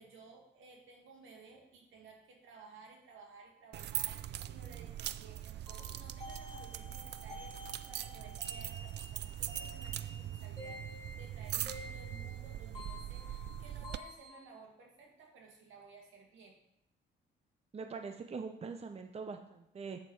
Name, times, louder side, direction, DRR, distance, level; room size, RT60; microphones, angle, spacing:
voice 1, 0.0-16.6, right 4 dB, 80° right, 0 dB, 2.2 m, -57 dB
sound 1, 3.7-14.0, right 12 dB, 60° right, 0.4 m, -41 dB
sound 2, 5.7-14.4, left 2 dB, 15° left, 2.5 m, -51 dB
voice 2, 17.7-20.0, right 5 dB, 30° right, 6 dB, 0.7 m, -43 dB
7.6 x 7.6 x 4.7 m, 0.81 s
cardioid pair, 90°, 20 cm